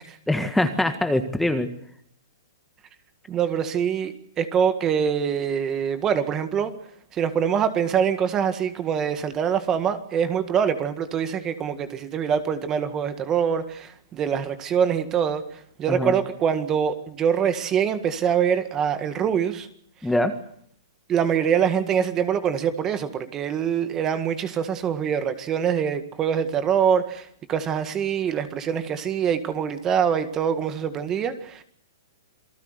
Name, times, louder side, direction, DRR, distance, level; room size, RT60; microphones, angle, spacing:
voice 1, 0.3-1.7 15.9-16.1 20.0-20.3, left 1 dB, 5° left, 7 dB, 1.7 m, -23 dB
voice 2, 3.3-6.7 7.1-15.4 15.8-19.7 21.1-31.6, right 8 dB, 20° right, 10 dB, 1.8 m, -24 dB
27.5 x 19.0 x 8.1 m, 0.65 s
hypercardioid pair, 145°, 2 cm